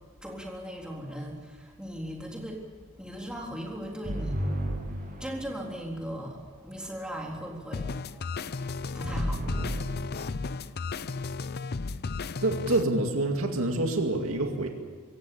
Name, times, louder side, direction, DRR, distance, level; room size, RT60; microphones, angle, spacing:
voice 1, 0.2-2.6 3.0-4.5 5.2-10.3 10.6-10.9 11.1-11.2, equal, 5° right, -1 dB, 3.7 m, -39 dB
sound 1, 4.0-5.7 9.0-9.9, right 1 dB, 40° right, 7.4 m, -32 dB
sound 2, 7.7-12.8, left 4 dB, 45° left, 0.6 m, -34 dB
voice 2, 12.4-14.7, right 2 dB, 70° right, 3 dB, 2.3 m, -27 dB
24.5 x 16.0 x 8.7 m, 1.5 s
head